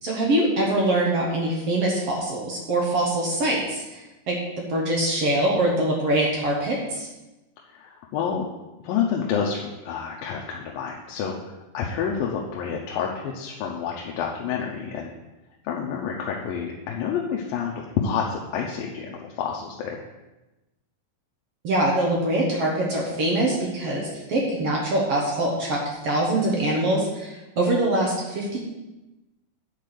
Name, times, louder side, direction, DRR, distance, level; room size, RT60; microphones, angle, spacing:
voice 1, 0.0-7.1 21.6-28.6, right 1 dB, 55° right, -2 dB, 1.8 m, -24 dB
voice 2, 7.7-8.5 8.8-15.1 15.6-20.0, left 7 dB, 85° left, -1 dB, 2.6 m, -29 dB
9.3 x 4.6 x 6.7 m, 1.0 s
omnidirectional pair, 4.1 m